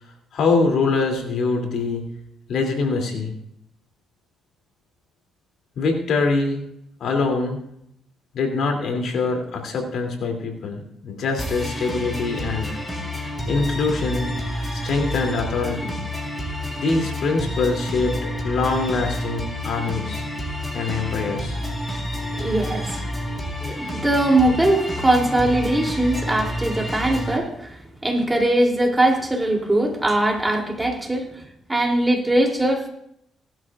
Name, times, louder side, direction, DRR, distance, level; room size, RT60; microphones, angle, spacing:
voice 1, 0.3-2.0 2.5-3.3 5.8-6.6 7.0-7.6 8.3-12.8 13.5-14.3 14.7-16.0 16.8-20.3 20.7-21.6, left 3 dB, 70° left, 2 dB, 2.8 m, -24 dB
sound 1, 11.4-27.4, equal, 10° left, 3.9 m, -29 dB
voice 2, 22.4-23.1 23.6-31.3 31.7-32.9, right 1 dB, 15° right, 1 dB, 3.0 m, -21 dB
19.0 x 12.0 x 2.5 m, 0.73 s
cardioid pair, 90°, 0 cm